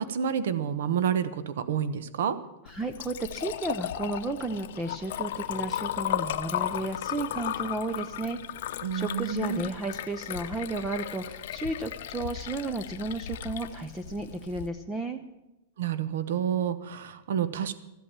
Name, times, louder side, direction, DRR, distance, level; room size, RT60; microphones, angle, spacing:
voice 1, 0.0-2.4 8.8-9.6 15.8-17.7, right 8 dB, 65° right, 14 dB, 1.0 m, -29 dB
Liquid, 2.7-14.7, left 11 dB, 55° left, 0.7 m, -35 dB
voice 2, 2.7-8.4 8.7-15.2, right 2 dB, 10° right, 8 dB, 0.5 m, -33 dB
14.0 x 8.4 x 8.7 m, 0.97 s
supercardioid pair, 175°, 0 cm